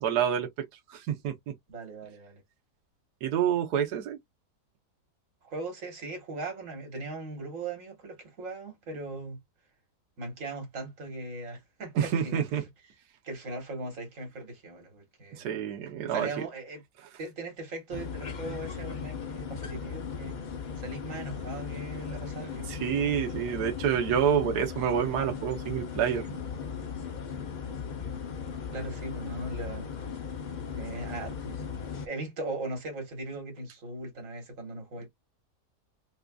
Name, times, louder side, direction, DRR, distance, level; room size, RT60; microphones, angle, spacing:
voice 1, 0.0-1.5 3.2-4.2 11.9-12.6 15.4-16.3 22.1-22.2 22.7-26.4, right 8 dB, 70° right, 1.4 m, -28 dB
voice 2, 1.7-2.4 5.4-9.4 10.2-12.5 13.2-15.5 16.1-16.8 17.2-20.3 20.8-22.7 28.7-29.9 30.7-31.6 31.8-35.1, right 2 dB, 50° right, 1.8 m, -39 dB
sound 1, 17.9-32.1, left 6 dB, 65° left, 0.4 m, -37 dB
4.2 x 2.4 x 2.3 m
omnidirectional pair, 1.8 m